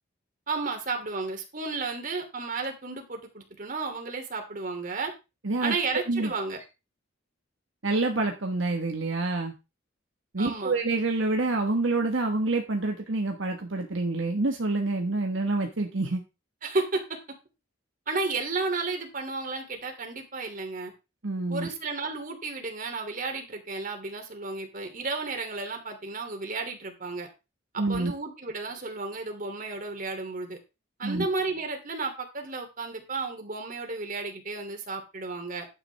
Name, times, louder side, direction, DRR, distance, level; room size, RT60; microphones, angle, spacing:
voice 1, 0.5-5.1 5.6-6.6 10.4-10.7 16.6-17.0 18.1-20.9 21.5-27.3 27.7-30.6 31.0-35.7, right 3 dB, 45° right, 4 dB, 2.8 m, -33 dB
voice 2, 5.4-5.7 6.1-6.3 7.8-9.5 10.3-16.2 21.2-21.7 27.8-28.1 31.0-31.3, right 2 dB, 70° right, 2 dB, 1.4 m, -27 dB
11.0 x 9.2 x 3.4 m, 0.27 s
head